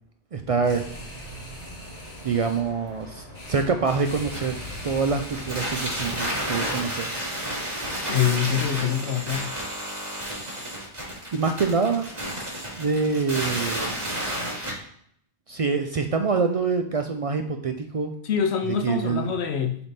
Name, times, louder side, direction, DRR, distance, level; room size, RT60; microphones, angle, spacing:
voice 1, 0.3-0.8 2.2-4.5 4.8-7.1 11.3-12.1 12.7-13.9 14.6-14.7 15.5-18.1 18.7-19.3, right 5 dB, 65° right, 6 dB, 0.3 m, -25 dB
sound 1, 0.5-7.0, equal, 90° left, 2.3 m, -40 dB
sound 2, 3.8-14.7, equal, 35° right, 2.8 m, -31 dB
voice 2, 8.1-9.5 18.2-19.8, left 8 dB, 75° left, 6 dB, 0.9 m, -25 dB
6.8 x 3.5 x 4.1 m, 0.65 s
omnidirectional pair, 1.1 m